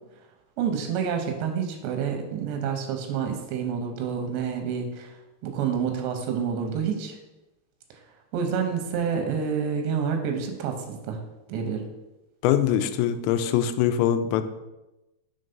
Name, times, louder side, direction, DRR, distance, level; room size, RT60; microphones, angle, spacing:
voice 1, 0.6-5.2 5.4-7.2 8.3-11.2 11.5-11.8, right 7 dB, 85° right, 4 dB, 2.9 m, -28 dB
voice 2, 12.4-14.4, left 10 dB, 85° left, 10 dB, 2.8 m, -23 dB
6.6 x 3.8 x 5.2 m, 0.98 s
omnidirectional pair, 5.1 m